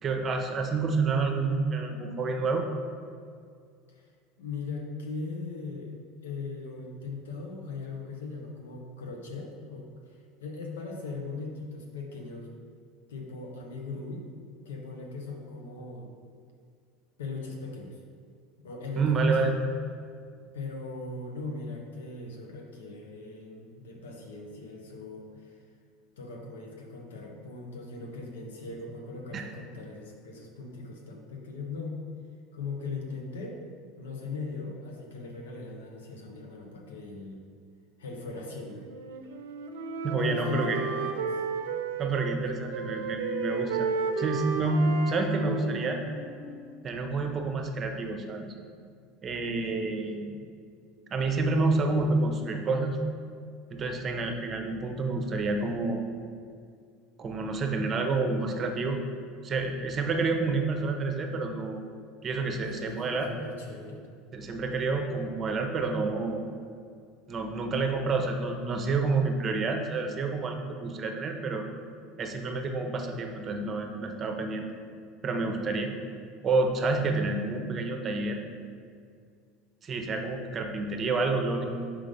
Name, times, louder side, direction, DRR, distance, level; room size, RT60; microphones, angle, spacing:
voice 1, 0.0-2.6 19.0-19.5 29.3-29.5 40.0-40.8 42.0-43.9 44.2-46.0 46.8-48.5 49.2-50.4 51.1-53.0 53.7-56.0 57.2-59.0 59.4-61.8 62.2-63.3 64.3-66.5 67.3-71.6 72.2-74.7 75.2-75.9 76.4-78.4 79.8-81.7, right 3 dB, 35° right, 4 dB, 0.8 m, -28 dB
voice 2, 4.4-5.9 6.2-12.5 13.1-14.3 14.6-16.1 17.2-18.0 18.6-19.6 20.4-25.6 26.2-32.0 32.5-33.6 34.0-37.4 38.0-38.9 40.2-41.4 42.5-42.8 50.3-50.4 62.6-64.1, left 3 dB, 85° left, 0 dB, 1.0 m, -39 dB
Wind instrument woodwind instrument, 38.8-42.4 42.7-46.7, right 5 dB, 80° right, 0.5 m, -33 dB
5.0 x 3.7 x 5.2 m, 2.2 s
hypercardioid pair, 85°, 0 cm